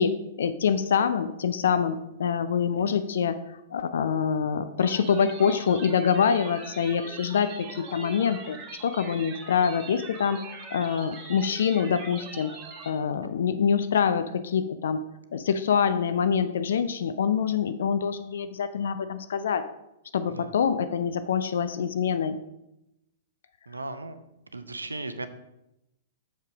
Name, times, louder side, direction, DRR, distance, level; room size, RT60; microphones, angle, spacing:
voice 1, 0.0-12.5 12.9-15.0 15.3-19.6 20.1-22.4, left 7 dB, 60° left, 11 dB, 0.4 m, -25 dB
sound 1, 4.8-12.9, right 4 dB, 30° right, 1.7 m, -42 dB
voice 2, 23.7-24.2 24.5-25.3, right 2 dB, 80° right, 11 dB, 0.6 m, -36 dB
6.9 x 5.4 x 4.9 m, 0.87 s
figure-of-eight pair, 105°, 0 cm